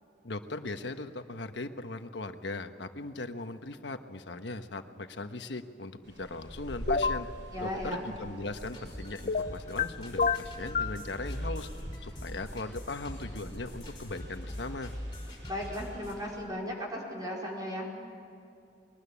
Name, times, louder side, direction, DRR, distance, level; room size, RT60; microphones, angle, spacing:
voice 1, 0.2-7.3 7.6-11.7 12.0-14.9, left 2 dB, 70° left, 8 dB, 1.3 m, -39 dB
sound 1, 6.0-16.4, equal, 90° right, 7.0 m, -47 dB
sound 2, 6.9-7.2 9.3-9.9 10.2-11.0, left 5 dB, 45° left, 0.6 m, -28 dB
voice 2, 7.5-8.1 15.4-17.9, left 1 dB, 20° right, -3 dB, 4.8 m, -36 dB
sound 3, 8.5-16.2, equal, 25° left, 5.0 m, -42 dB
22.5 x 20.0 x 10.0 m, 2.6 s
head